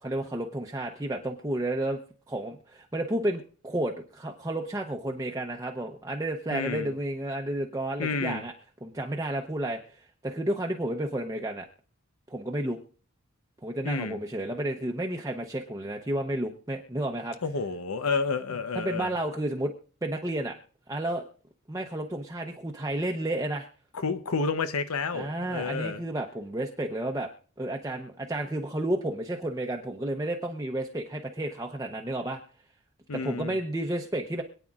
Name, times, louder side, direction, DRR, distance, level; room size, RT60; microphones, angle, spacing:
voice 1, 0.0-2.0 2.3-8.5 8.8-11.6 12.3-12.8 13.6-17.4 18.7-19.7 20.0-20.6 20.9-21.2 21.7-23.7 25.1-27.3 27.6-32.4 33.1-34.4, right 1 dB, 15° right, 0.7 m, -31 dB
voice 2, 6.5-6.9 8.0-8.4 13.8-14.2 17.4-19.1 23.9-26.0 33.1-33.6, left 4 dB, 85° left, 0.8 m, -30 dB
26.0 x 9.1 x 2.4 m
head